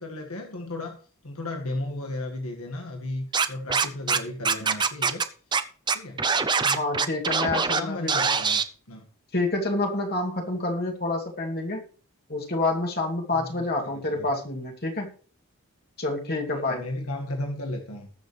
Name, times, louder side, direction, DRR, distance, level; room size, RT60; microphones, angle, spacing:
voice 1, 0.0-5.2 5.9-6.2 7.5-8.6 8.9-9.1 13.3-13.7 13.9-14.3 16.5-18.1, left 1 dB, 80° left, 2 dB, 1.8 m, -35 dB
Scratching (performance technique), 3.3-4.2 4.4-5.2 5.5-5.6 5.9-7.8 8.1-8.6, right 5 dB, 20° right, 0.6 m, -23 dB
voice 2, 6.6-8.2 9.3-11.8 12.3-15.1 16.0-16.8, left 2 dB, 45° left, 0 dB, 2.5 m, -28 dB
20.0 x 6.9 x 3.3 m, 0.42 s
head